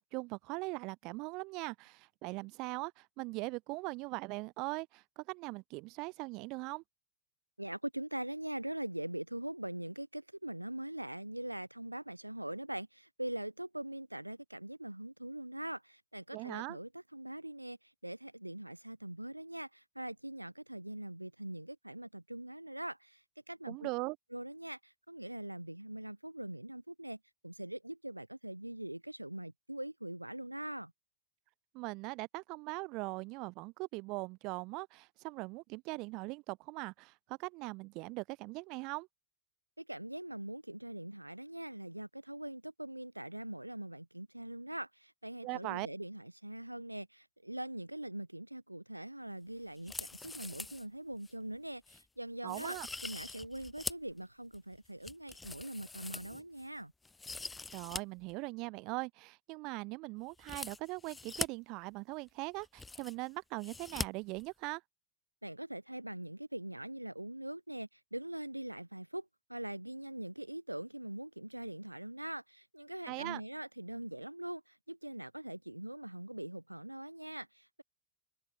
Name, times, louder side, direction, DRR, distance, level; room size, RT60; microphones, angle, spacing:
voice 1, 0.0-6.8 16.3-16.8 23.7-24.2 31.7-39.1 45.4-45.9 52.4-52.9 57.7-64.8 73.1-73.4, right 25 dB, 40° right, 0.7 m, -40 dB
voice 2, 7.6-23.9 24.3-27.2 27.4-30.9 39.8-56.9 65.4-77.8, right 1 dB, 85° right, 0.3 m, -42 dB
sound 1, 49.8-50.9 51.2-51.3 51.9-52.0 52.5-54.1 54.5-56.7 57.0-58.0 58.3-58.4 60.4-61.5 62.3-62.4 62.6-63.3 63.6-64.1 64.4-64.5, left 3 dB, 10° left, 0.9 m, -43 dB
open air
figure-of-eight pair, 90°, 0 cm